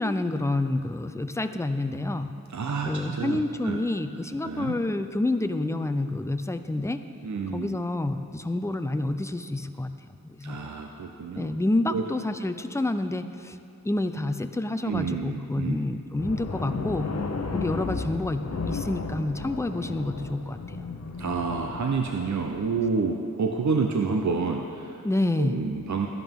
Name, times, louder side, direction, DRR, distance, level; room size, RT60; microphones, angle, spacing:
voice 1, 0.0-2.3 2.9-7.0 7.5-9.9 10.2-10.6 11.3-13.6 13.8-17.1 17.5-20.8 25.0-25.6, left 2 dB, 10° left, 8 dB, 0.5 m, -28 dB
voice 2, 2.5-3.8 4.4-4.8 7.2-7.8 10.4-11.5 11.9-12.1 14.8-15.8 21.2-25.0 25.4-26.1, right 4 dB, 60° right, 3 dB, 0.7 m, -29 dB
sound 1, 16.2-22.7, left 4 dB, 50° left, 0.8 m, -34 dB
13.0 x 11.0 x 3.7 m, 2.6 s
wide cardioid pair, 55°, 33 cm